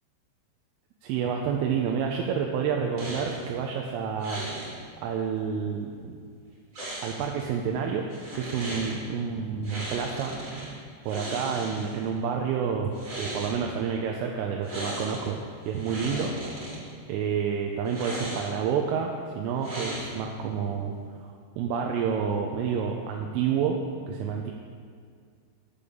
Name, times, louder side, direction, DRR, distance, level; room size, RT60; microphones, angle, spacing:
voice 1, 1.0-4.5 5.0-6.2 7.0-8.1 8.4-10.3 11.1-15.4 15.7-16.4 17.1-20.9 21.2-23.8 24.1-24.5, right 7 dB, 80° right, 1 dB, 3.0 m, -29 dB
sound 1, 3.0-3.5 4.2-4.7 6.7-7.4 8.1-9.0 9.6-10.7 11.0-12.0 12.8-13.6 14.6-15.3 15.6-16.8 17.8-18.7 19.6-20.3, right 1 dB, 25° right, 1.8 m, -36 dB
10.5 x 5.0 x 6.9 m, 2.2 s
omnidirectional pair, 5.9 m